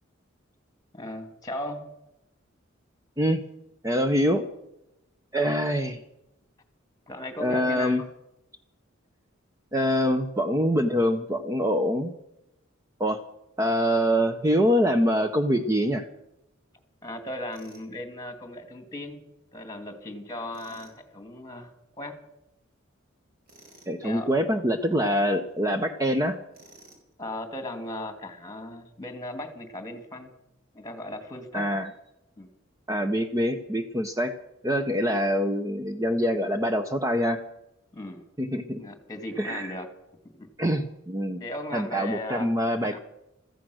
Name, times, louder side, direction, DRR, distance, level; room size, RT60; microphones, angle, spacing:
voice 1, 0.9-1.8 7.1-8.0 17.0-19.2 19.5-22.2 24.0-24.3 27.2-30.3 30.7-31.8 32.4-32.5 37.9-38.2 38.8-39.9 40.3-40.5 41.4-42.5 42.8-43.0, left 1 dB, 20° left, 8 dB, 2.3 m, -37 dB
voice 2, 3.8-4.4 5.3-6.0 7.4-8.0 9.7-12.1 13.0-13.2 13.6-16.1 23.9-26.4 31.5-31.9 32.9-34.3 34.6-37.4 38.4-38.8 39.4-39.8 40.6-41.4 41.7-43.0, equal, 15° right, 7 dB, 0.7 m, -25 dB
Tools, 17.5-17.9 20.5-21.0 23.5-24.0 26.5-27.1, right 2 dB, 50° right, 4.5 m, -53 dB
15.0 x 14.5 x 6.3 m, 0.89 s
head